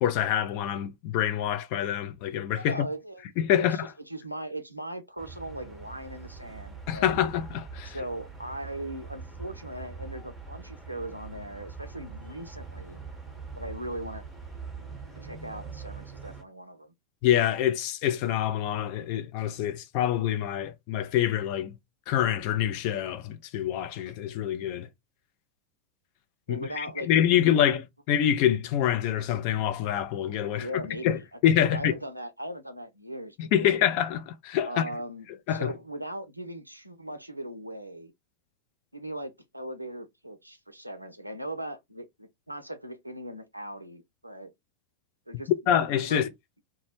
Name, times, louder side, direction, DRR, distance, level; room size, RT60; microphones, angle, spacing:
voice 1, 0.0-2.8 3.4-3.9 6.9-8.0 17.2-21.7 22.1-24.9 26.5-27.8 28.1-30.7 31.0-31.2 31.4-31.9 33.4-34.8 35.5-35.7 45.7-46.3, left 10 dB, 45° left, 0.4 m, -26 dB
voice 2, 2.6-3.2 3.6-7.3 7.8-13.0 13.5-14.3 15.2-16.9 26.5-27.8 30.5-33.9 34.6-38.1 38.9-44.5 45.3-45.5 46.0-46.2, right 1 dB, 85° right, 0.4 m, -39 dB
sound 1, 5.2-16.4, right 5 dB, 5° right, 0.9 m, -43 dB
2.2 x 2.0 x 2.9 m
figure-of-eight pair, 90°, 0 cm